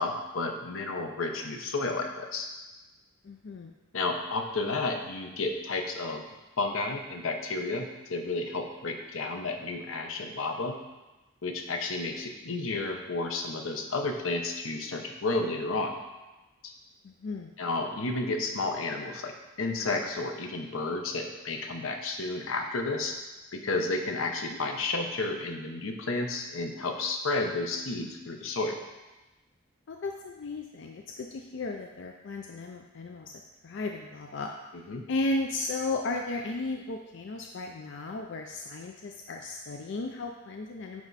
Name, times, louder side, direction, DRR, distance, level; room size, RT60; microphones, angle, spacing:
voice 1, 0.0-2.5 3.9-6.3 6.6-10.8 11.4-16.0 17.6-19.3 19.6-23.1 23.5-28.8 34.9-35.0, left 3 dB, 85° left, 4 dB, 0.8 m, -31 dB
voice 2, 3.2-3.7 17.0-17.5 24.5-24.6 29.9-33.3 33.6-34.5 35.1-41.0, left 2 dB, 60° left, 2 dB, 0.4 m, -35 dB
9.5 x 3.5 x 4.0 m, 1.1 s
head